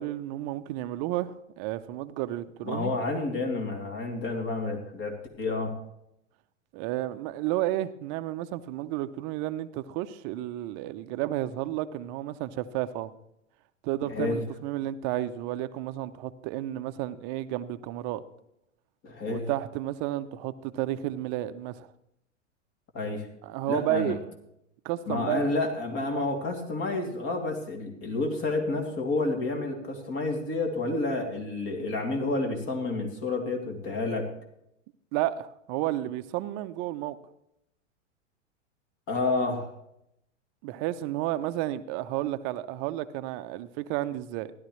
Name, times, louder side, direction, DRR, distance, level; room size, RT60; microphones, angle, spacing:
voice 1, 0.0-2.9 6.7-13.1 13.8-18.2 19.2-21.9 23.4-24.2 24.8-25.5 35.1-37.2 40.6-44.5, right 14 dB, 40° right, 11 dB, 0.7 m, -32 dB
voice 2, 2.6-5.8 14.0-14.4 19.0-19.5 22.9-23.3 23.7-24.2 25.1-34.3 39.1-39.8, left 3 dB, 35° left, 3 dB, 2.8 m, -30 dB
15.5 x 11.5 x 3.2 m, 0.79 s
hypercardioid pair, 105°, 37 cm